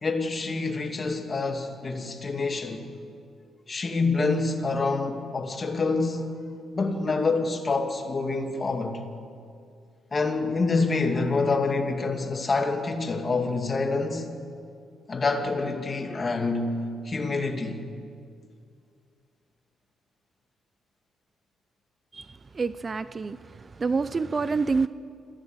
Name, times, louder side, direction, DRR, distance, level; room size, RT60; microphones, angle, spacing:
voice 1, 0.0-2.8 3.7-6.3 6.7-9.0 10.1-14.3 15.1-17.8, left 3 dB, 35° left, 2.3 m, -27 dB
voice 2, 22.5-23.4 23.8-24.9, right 4 dB, 30° right, 0.5 m, -26 dB
27.5 x 15.0 x 8.0 m
cardioid pair, 105°, 0 cm